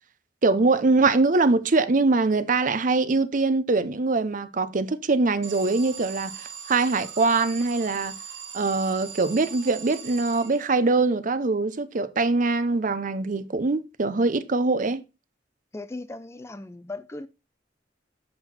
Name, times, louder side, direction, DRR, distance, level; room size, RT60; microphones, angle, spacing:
voice 1, 0.4-8.1 8.5-15.0, right 3 dB, 45° right, 0.7 m, -23 dB
Alarm, 5.4-11.0, right 7 dB, 85° right, 1.6 m, -40 dB
voice 2, 15.7-17.3, left 2 dB, 15° left, 0.4 m, -37 dB
7.7 x 6.0 x 4.2 m
head